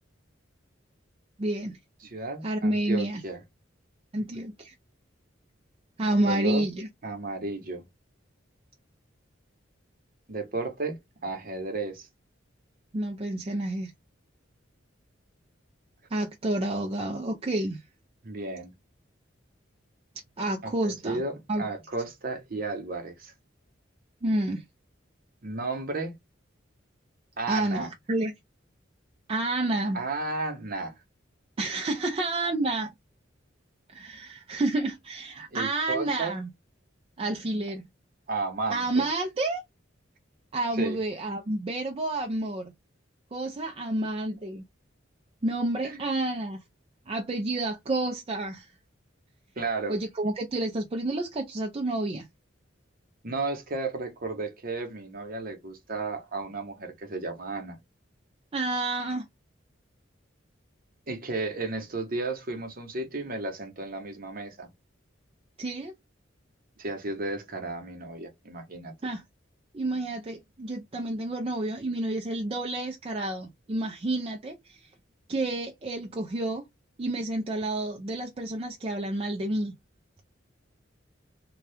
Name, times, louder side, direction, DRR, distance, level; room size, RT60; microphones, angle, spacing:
voice 1, 1.4-1.8 2.4-3.2 4.1-4.7 6.0-6.9 12.9-13.9 16.1-17.8 20.4-21.2 21.5-21.7 24.2-24.6 27.5-28.3 29.3-30.0 31.6-32.9 33.9-36.5 37.2-37.8 38.7-39.6 40.5-42.7 43.3-44.6 45.4-46.6 47.1-48.7 49.9-52.3 58.5-59.2 65.6-65.9 69.0-69.2 69.7-74.9 75.3-76.6 77.0-79.7, right 2 dB, 30° right, 0.4 m, -29 dB
voice 2, 2.0-3.4 6.2-6.6 7.0-7.8 10.3-12.1 18.2-18.7 20.6-23.3 25.4-26.1 27.4-27.9 29.9-30.9 35.5-36.4 38.3-39.0 40.7-41.0 45.8-46.0 49.6-49.9 53.2-57.8 61.1-64.7 66.8-68.9, right 3 dB, 45° right, 0.9 m, -33 dB
2.7 x 2.3 x 3.3 m
head